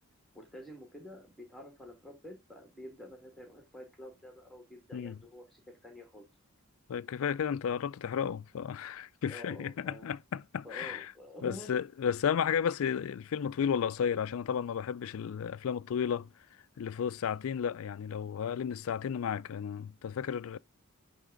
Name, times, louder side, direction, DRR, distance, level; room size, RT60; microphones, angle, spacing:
voice 1, 0.3-6.3 9.3-10.2 10.6-11.7, left 1 dB, ahead, 1.8 m, -49 dB
voice 2, 6.9-11.1 11.4-16.3 16.8-20.6, left 7 dB, 65° left, 0.3 m, -33 dB
10.0 x 3.6 x 3.7 m
head